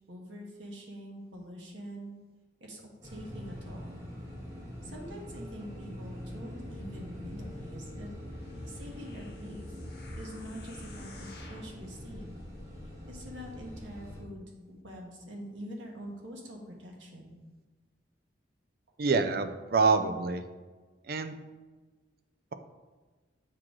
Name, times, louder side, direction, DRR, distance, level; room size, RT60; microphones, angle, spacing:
voice 1, 0.1-2.2 2.6-4.0 4.8-8.1 8.7-9.7 10.2-12.4 13.1-17.3, equal, 85° right, -1 dB, 1.4 m, -45 dB
sound 1, 3.0-14.2, left 1 dB, 15° right, 1.3 m, -43 dB
sound 2, 8.2-11.8 12.4-12.5, left 3 dB, 55° left, 1.2 m, -54 dB
voice 2, 19.0-20.4 21.1-21.4, right 4 dB, 55° right, 9 dB, 0.5 m, -26 dB
7.5 x 4.7 x 3.7 m, 1.3 s
head